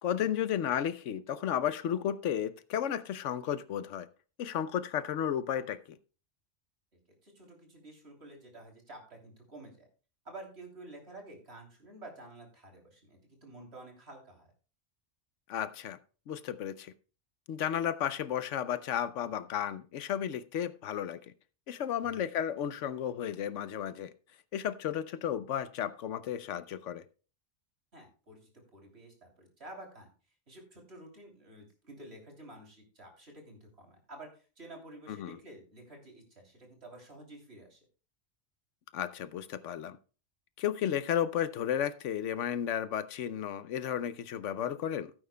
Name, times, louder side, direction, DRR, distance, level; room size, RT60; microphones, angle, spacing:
voice 1, 0.0-4.1 4.4-6.0 15.5-16.0 16.3-16.9 17.5-21.2 21.7-24.1 24.5-27.0 35.1-35.4 38.9-40.0 40.6-45.1, left 9 dB, 85° left, 1.0 m, -33 dB
voice 2, 7.2-9.9 10.2-14.5 22.0-22.3 27.9-30.1 30.5-37.8, right 1 dB, 60° right, 3.4 m, -50 dB
16.0 x 8.8 x 2.2 m
omnidirectional pair, 1.2 m